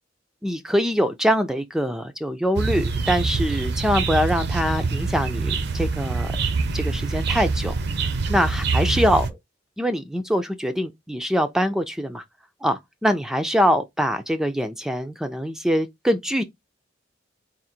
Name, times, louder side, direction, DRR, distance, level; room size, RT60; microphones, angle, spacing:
voice 1, 0.4-6.3 6.7-7.8 8.3-9.3 9.8-12.2 12.6-16.4, equal, 5° right, 0.3 m, -23 dB
sound 1, 2.5-9.3, right 4 dB, 60° right, 0.6 m, -25 dB
3.8 x 2.0 x 4.3 m
head